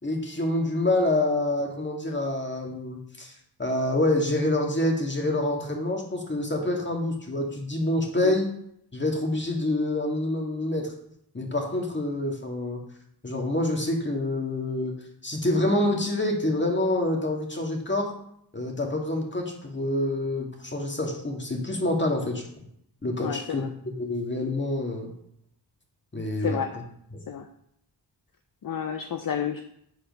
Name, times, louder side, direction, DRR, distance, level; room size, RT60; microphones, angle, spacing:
voice 1, 0.0-3.3 3.6-8.5 8.9-10.9 11.3-12.8 13.2-15.0 15.2-18.1 18.5-22.4 23.0-23.6 24.0-25.1 26.1-26.6, left 1 dB, 25° left, 1 dB, 1.9 m, -27 dB
voice 2, 23.2-23.7 26.4-26.7 27.3-27.5 28.6-29.6, left 8 dB, 55° left, 7 dB, 0.6 m, -30 dB
8.1 x 4.3 x 5.3 m, 0.70 s
wide cardioid pair, 75°, 41 cm